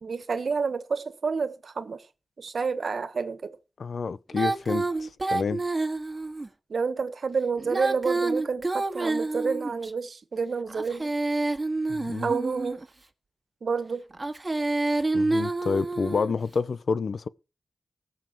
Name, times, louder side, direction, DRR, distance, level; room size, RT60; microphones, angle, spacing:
voice 1, 0.0-2.0 2.4-3.6 6.7-11.1 12.2-12.8 13.6-14.0, right 5 dB, 75° right, 1.6 m, -29 dB
voice 2, 3.8-5.6 11.9-12.3 15.1-17.3, left 5 dB, 75° left, 0.7 m, -29 dB
Female singing, 4.3-6.5 7.6-9.9 10.7-12.8 14.1-16.3, right 2 dB, 30° right, 2.1 m, -28 dB
19.0 x 7.1 x 4.6 m
cardioid pair, 60°, 0 cm